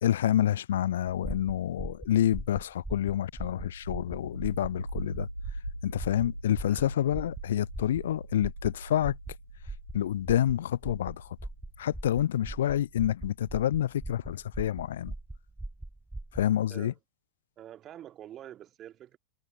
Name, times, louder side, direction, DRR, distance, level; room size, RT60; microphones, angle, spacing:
voice 1, 0.0-5.3 5.8-9.2 9.9-11.2 11.8-15.1 16.3-16.9, left 11 dB, 60° left, 0.5 m, -28 dB
sound 1, 1.1-16.5, right 2 dB, 5° right, 2.7 m, -41 dB
sound 2, 3.4-14.1, equal, 90° right, 4.5 m, -43 dB
voice 2, 16.7-17.0 17.6-19.2, right 11 dB, 30° right, 1.9 m, -47 dB
figure-of-eight pair, 90°, 0 cm